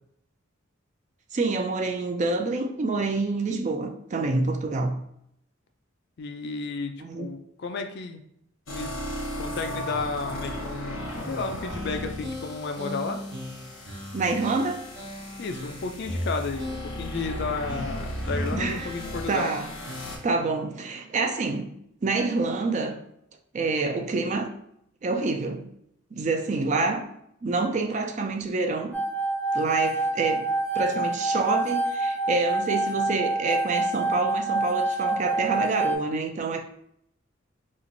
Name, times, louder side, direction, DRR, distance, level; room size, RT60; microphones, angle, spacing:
voice 1, 1.3-5.0 7.0-7.3 14.1-14.9 18.5-18.9 19.3-19.7 20.2-21.7 22.0-23.0 23.5-24.5 25.0-25.7 26.1-27.0 27.4-29.0 29.5-30.4 30.7-36.6, right 3 dB, 35° right, 5 dB, 0.4 m, -27 dB
voice 2, 6.2-8.2 8.7-9.0 9.4-11.0 11.3-13.2 15.4-19.6, left 4 dB, 55° left, 6 dB, 0.4 m, -32 dB
sound 1, 8.7-20.2, equal, 75° left, 0.9 m, -36 dB
sound 2, 11.7-20.4, equal, 60° right, 0.9 m, -37 dB
sound 3, 28.9-36.0, right 2 dB, 5° left, 0.6 m, -27 dB
3.1 x 2.4 x 3.8 m, 0.73 s
head